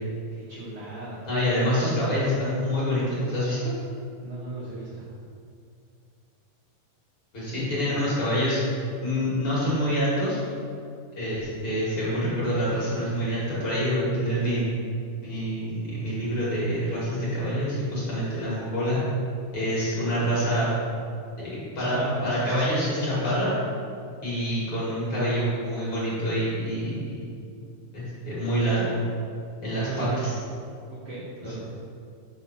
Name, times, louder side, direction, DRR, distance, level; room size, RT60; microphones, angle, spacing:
voice 1, 0.3-1.3 4.2-5.0 7.5-8.2 21.8-22.2 29.7-30.2 30.9-31.6, right 3 dB, 75° right, -6 dB, 1.3 m, -36 dB
voice 2, 1.2-3.7 7.3-8.7 9.0-10.4 11.2-14.6 15.2-19.0 19.5-20.7 21.4-22.0 22.2-23.5 24.2-27.3 27.9-28.9 29.6-30.3 31.4-31.6, equal, 45° left, -9 dB, 2.1 m, -26 dB
5.6 x 4.0 x 5.6 m, 2.4 s
omnidirectional pair, 3.9 m